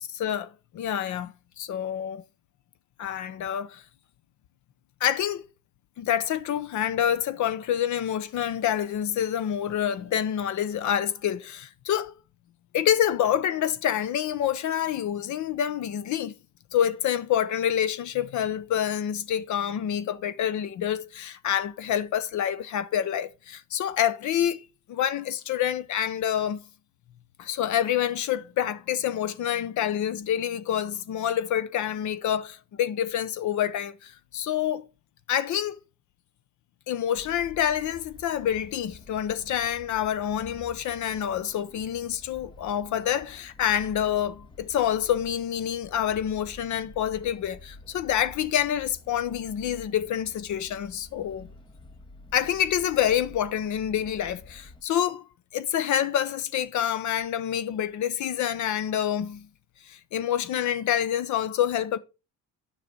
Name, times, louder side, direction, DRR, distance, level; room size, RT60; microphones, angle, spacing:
voice 1, 0.1-2.2 3.0-3.8 5.0-5.4 6.0-12.2 12.7-16.3 16.7-26.6 27.4-34.9 35.3-35.8 36.9-51.5 52.3-59.5 59.9-62.0, left 10 dB, 55° left, 0.8 m, -27 dB
sound 1, 37.1-54.8, left 2 dB, 15° left, 0.8 m, -49 dB
9.6 x 5.8 x 5.1 m
cardioid pair, 130°, 34 cm